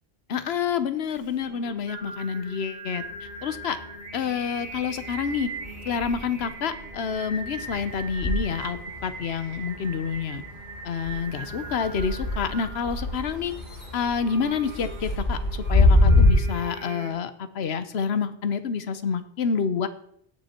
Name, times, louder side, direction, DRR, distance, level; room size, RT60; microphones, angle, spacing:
voice 1, 0.3-3.0 3.4-3.8 4.1-5.5 5.8-10.4 10.8-13.5 13.9-19.9, left 6 dB, 65° left, 12 dB, 1.1 m, -28 dB
Singing, 1.1-17.1, right 2 dB, 65° right, 2.6 m, -40 dB
sound 1, 3.0-4.3 4.6-16.3, left 2 dB, 40° left, 3.2 m, -27 dB
18.0 x 6.1 x 4.4 m, 0.69 s
omnidirectional pair, 1.2 m